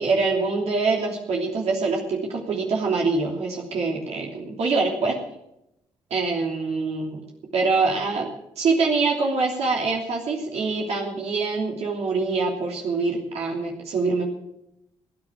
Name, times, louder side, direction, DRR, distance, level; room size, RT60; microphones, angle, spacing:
voice 1, 0.0-5.2 6.1-7.2 7.5-8.3 8.6-14.2, right 4 dB, 70° right, -1 dB, 3.1 m, -24 dB
15.5 x 9.6 x 7.4 m, 0.82 s
supercardioid pair, 50°, 11 cm